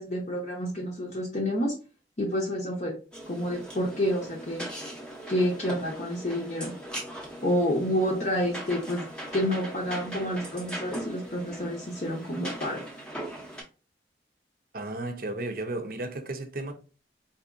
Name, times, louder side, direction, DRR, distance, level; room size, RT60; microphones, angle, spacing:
voice 1, 0.0-1.7 2.2-3.0 3.3-4.7 5.3-6.7 7.4-9.1 9.3-12.8, equal, 40° left, 0.7 m, -29 dB
sound 1, 3.1-13.6, right 1 dB, 5° left, 0.6 m, -40 dB
voice 2, 14.7-16.7, right 2 dB, 55° right, 0.6 m, -34 dB
3.9 x 2.7 x 2.5 m
head